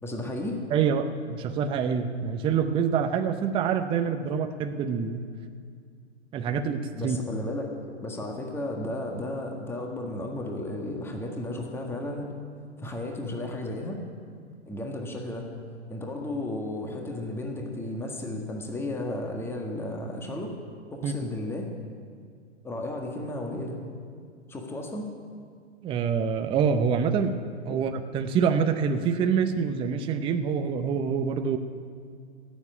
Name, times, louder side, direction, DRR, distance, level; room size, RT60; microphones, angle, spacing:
voice 1, 0.0-0.6 6.9-7.7 8.0-12.3 12.8-14.0 14.6-15.5 15.9-20.5 20.9-21.7 22.6-23.8 24.5-25.1 27.7-27.8, left 1 dB, 5° left, 2 dB, 1.5 m, -34 dB
voice 2, 0.7-5.2 6.3-7.2 21.0-21.1 25.8-27.4 27.7-31.6, right 6 dB, 15° right, 7 dB, 0.6 m, -26 dB
16.5 x 7.3 x 9.9 m, 2.2 s
hypercardioid pair, 125°, 35 cm